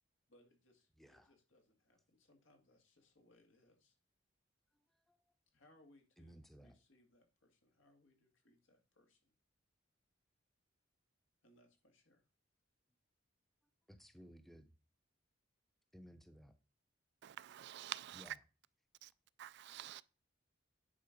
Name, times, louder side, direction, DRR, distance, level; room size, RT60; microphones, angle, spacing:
voice 1, 0.3-4.0 5.5-9.3 11.4-12.2, left 1 dB, 85° left, 2.1 m, -70 dB
voice 2, 1.0-1.3 5.1-5.2 6.2-6.8 13.9-14.7 15.9-16.5 18.1-18.3, equal, ahead, 0.7 m, -58 dB
voice 3, 17.2-18.4 19.0-19.1 19.4-20.0, right 13 dB, 60° right, 0.3 m, -47 dB
9.7 x 4.3 x 5.1 m
head